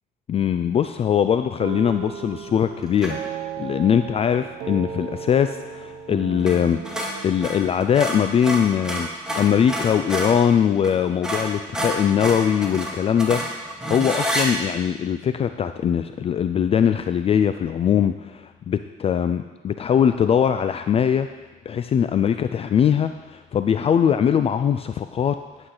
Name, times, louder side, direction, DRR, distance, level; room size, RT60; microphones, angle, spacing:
voice 1, 0.3-9.1 9.3-13.4 13.7-21.3 21.7-25.4, left 8 dB, 35° left, 9 dB, 0.4 m, -21 dB
sound 1, 1.6-9.3, right 8 dB, 70° right, 0.9 m, -36 dB
sound 2, 3.0-3.3 6.4-6.6 6.8-10.4 10.8-10.9 11.2-14.5, equal, 5° right, 2.0 m, -28 dB
11.5 x 8.0 x 3.9 m, 1.2 s
cardioid pair, 110°, 17 cm